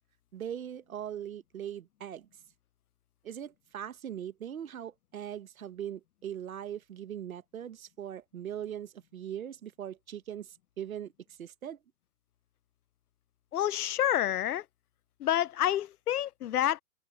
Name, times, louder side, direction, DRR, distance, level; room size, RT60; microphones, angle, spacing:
voice 1, 0.3-2.3 3.2-10.5 10.8-11.1 11.4-11.8, right 10 dB, 55° right, 1.2 m, -40 dB
voice 2, 13.5-14.6 15.2-16.8, left 12 dB, 65° left, 0.5 m, -28 dB
open air
hypercardioid pair, 175°, 49 cm